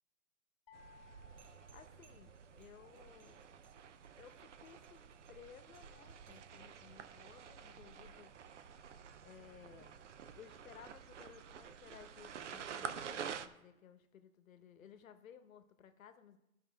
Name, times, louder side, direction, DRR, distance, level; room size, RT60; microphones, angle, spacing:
sound 1, 0.7-2.8, left 6 dB, 25° left, 1.3 m, -64 dB
sound 2, 0.7-13.5, right 7 dB, 55° right, 0.7 m, -50 dB
sound 3, 1.4-6.6, right 7 dB, 85° right, 2.6 m, -70 dB
voice 1, 1.7-3.4 4.2-8.3 9.2-10.0 10.4-16.4, left 8 dB, 65° left, 9 dB, 1.0 m, -58 dB
14.0 x 5.4 x 3.5 m, 0.92 s
hypercardioid pair, 175°, 44 cm